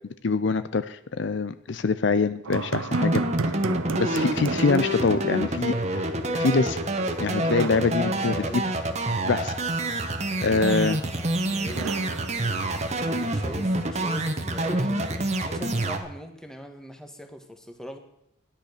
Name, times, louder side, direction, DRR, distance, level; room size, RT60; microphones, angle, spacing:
voice 1, 0.2-3.2 3.5-3.6 4.0-6.1 6.3-6.8 7.2-8.6 9.2-9.5 10.4-11.0, left 4 dB, 55° left, 13 dB, 0.5 m, -24 dB
sound 1, 2.4-5.8 6.1-6.2 7.4-8.8 11.7-13.2, right 3 dB, 90° right, 0.8 m, -33 dB
sound 2, 2.9-16.0, right 1 dB, 30° right, 1.2 m, -27 dB
voice 2, 8.0-8.7 10.4-12.0 12.9-18.0, equal, 5° left, 5 dB, 1.5 m, -41 dB
13.5 x 10.5 x 6.6 m, 0.82 s
head